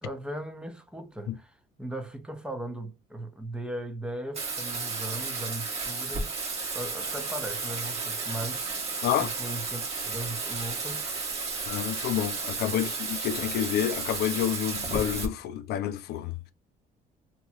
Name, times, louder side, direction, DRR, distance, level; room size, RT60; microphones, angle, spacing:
voice 1, 0.0-6.3 6.7-11.2 12.7-13.0, right 1 dB, 5° right, 0.7 m, -38 dB
Bathtub (filling or washing), 4.3-15.2, right 4 dB, 35° right, 1.1 m, -33 dB
voice 2, 11.7-16.5, left 11 dB, 70° left, 0.4 m, -29 dB
2.9 x 2.9 x 2.2 m
cardioid pair, 110°, 17 cm